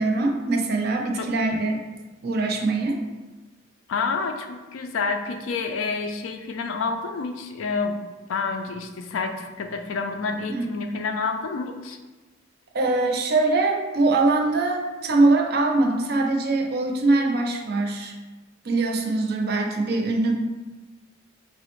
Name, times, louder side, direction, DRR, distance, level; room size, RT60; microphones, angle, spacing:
voice 1, 0.0-1.8 2.2-3.0 10.5-10.6 12.7-18.1 18.6-20.3, right 2 dB, 50° right, 2 dB, 0.4 m, -22 dB
voice 2, 3.9-8.0 8.3-12.0, left 4 dB, 85° left, 5 dB, 0.4 m, -28 dB
4.7 x 2.0 x 3.0 m, 1.2 s
head